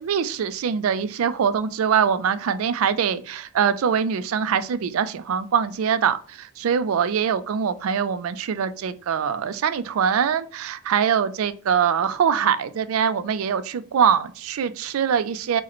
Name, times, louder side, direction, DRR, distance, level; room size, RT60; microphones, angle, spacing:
voice 1, 0.0-15.6, right 7 dB, 80° right, 13 dB, 0.4 m, -23 dB
4.7 x 2.1 x 2.9 m, 0.42 s
head